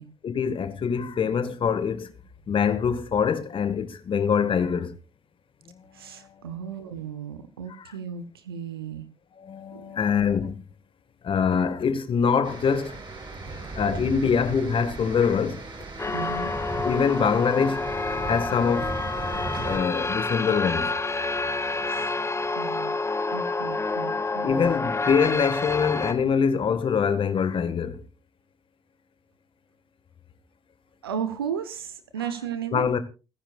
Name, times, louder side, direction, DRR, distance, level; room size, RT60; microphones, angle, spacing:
voice 1, 0.2-2.1 2.5-4.9 6.2-6.3 9.4-10.6 11.2-13.0 13.8-15.6 16.8-17.9 18.3-19.0 19.6-20.9 24.4-28.0 32.7-33.0, left 6 dB, 45° left, 1.7 m, -24 dB
voice 2, 5.9-9.1 9.7-10.0 16.1-16.5 21.8-22.1 22.5-24.5 31.0-32.9, right 7 dB, 85° right, 0.9 m, -35 dB
sound 1, 12.4-19.8, right 2 dB, 40° right, 6.9 m, -37 dB
sound 2, 16.0-26.1, left 3 dB, 20° left, 1.9 m, -28 dB
29.0 x 10.0 x 2.5 m
figure-of-eight pair, 45°, 12 cm